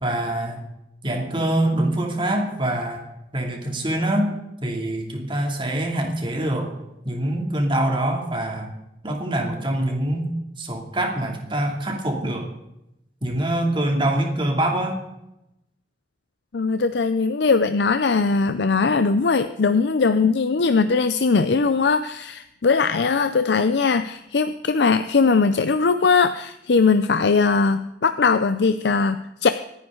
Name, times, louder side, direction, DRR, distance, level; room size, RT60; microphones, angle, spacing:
voice 1, 0.0-0.6 1.0-3.0 3.3-4.3 4.6-6.7 7.0-8.7 9.0-10.3 10.6-12.5 13.2-15.0, right 1 dB, 30° right, 2 dB, 2.8 m, -24 dB
voice 2, 16.5-29.5, left 4 dB, 75° left, 11 dB, 0.6 m, -20 dB
26.5 x 9.9 x 3.9 m, 0.89 s
head